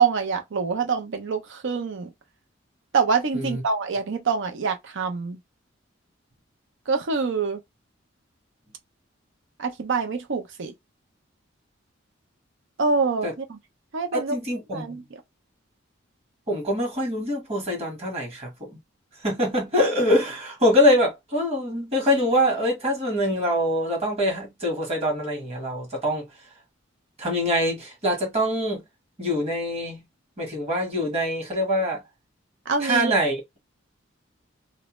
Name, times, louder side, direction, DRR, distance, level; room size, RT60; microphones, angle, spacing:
voice 1, 0.0-2.1 2.9-5.4 6.9-7.6 9.6-10.7 12.8-13.6 13.9-14.4 14.7-15.2 32.7-33.1, right 5 dB, 65° right, 0.6 m, -25 dB
voice 2, 14.1-15.0 16.5-18.8 19.2-26.3 27.2-28.8 29.2-30.0 30.4-32.0 32.8-33.4, equal, 35° right, 1.4 m, -24 dB
2.6 x 2.1 x 3.0 m
head